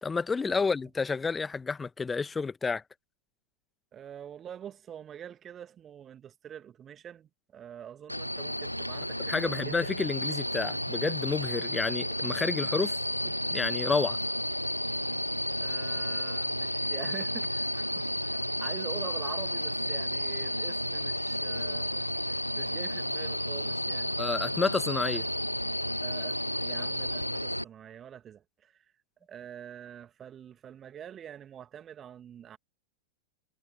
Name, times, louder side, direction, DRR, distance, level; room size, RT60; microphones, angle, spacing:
voice 1, 0.0-2.8 9.3-13.0 13.2-14.2 24.2-25.3, left 4 dB, 15° left, 1.5 m, -30 dB
voice 2, 3.9-9.7 15.6-24.1 25.1-25.2 26.0-28.8 29.3-32.6, right 9 dB, 25° right, 2.6 m, -45 dB
sound 1, 8.1-27.6, equal, 90° left, 0.3 m, -32 dB
figure-of-eight pair, 90°, 0 cm